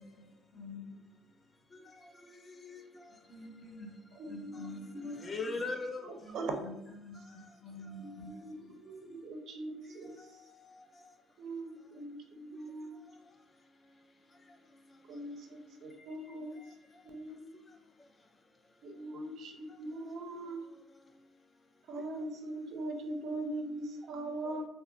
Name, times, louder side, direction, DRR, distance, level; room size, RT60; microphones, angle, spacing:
voice 1, 0.0-1.6 3.3-5.2 6.2-8.7 9.0-9.1, left 2 dB, 40° left, -5 dB, 1.0 m, -49 dB
voice 2, 1.7-3.1 4.5-4.7 5.1-6.2 7.1-7.5 8.2-8.4 9.8-10.8 16.6-16.7 24.4-24.6, left 3 dB, 25° left, 6 dB, 0.3 m, -42 dB
voice 3, 4.2-5.2 6.0-6.6 8.0-10.4 11.4-13.1 15.1-16.8 17.0-17.5 18.8-20.6 21.8-24.7, right 2 dB, 55° right, 4 dB, 0.5 m, -41 dB
3.6 x 2.1 x 2.2 m, 0.84 s
cardioid pair, 120°, 0 cm